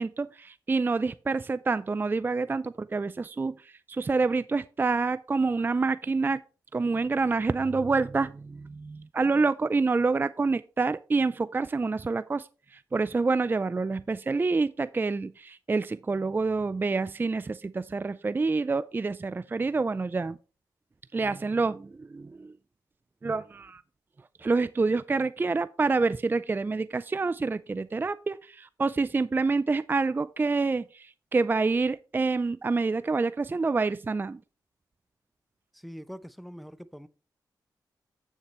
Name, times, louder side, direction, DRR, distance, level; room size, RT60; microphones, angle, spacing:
voice 1, 0.0-6.4 6.7-20.4 21.1-22.5 23.2-23.8 24.4-34.4, right 3 dB, 25° right, 0.4 m, -27 dB
voice 2, 35.7-37.1, equal, ahead, 0.7 m, -43 dB
8.5 x 7.2 x 3.1 m
cardioid pair, 60°, 8 cm